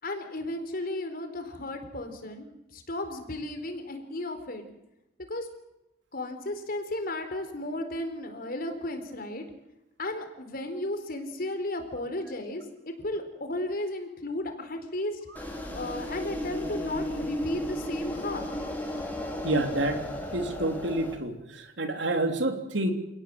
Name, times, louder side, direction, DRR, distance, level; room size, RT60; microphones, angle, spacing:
voice 1, 0.0-4.6 5.3-5.5 6.1-9.4 10.0-18.6, left 1 dB, 50° left, 7 dB, 4.4 m, -34 dB
sound 1, 15.4-21.1, left 1 dB, 10° left, 4.5 m, -34 dB
voice 2, 19.4-20.0 20.3-22.9, right 1 dB, 70° right, 6 dB, 3.3 m, -28 dB
28.5 x 18.5 x 7.9 m, 0.92 s
head